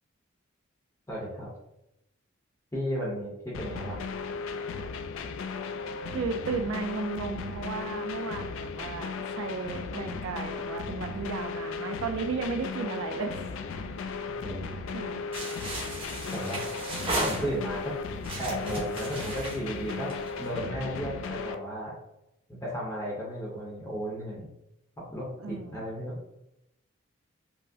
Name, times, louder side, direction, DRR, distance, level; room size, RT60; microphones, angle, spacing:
voice 1, 1.1-1.5 2.7-4.0 14.4-14.7 16.3-16.6 17.2-18.0 18.4-21.9 22.5-24.5 25.0-26.2, equal, 15° left, -6 dB, 0.7 m, -34 dB
sound 1, 3.5-21.5, left 4 dB, 70° left, 0.3 m, -36 dB
voice 2, 6.1-13.3 14.9-15.2 25.4-25.8, right 4 dB, 75° right, 7 dB, 0.3 m, -34 dB
sound 2, 15.3-17.8 18.2-20.5, right 1 dB, 25° right, 1.0 m, -35 dB
4.5 x 2.0 x 2.7 m, 0.86 s
head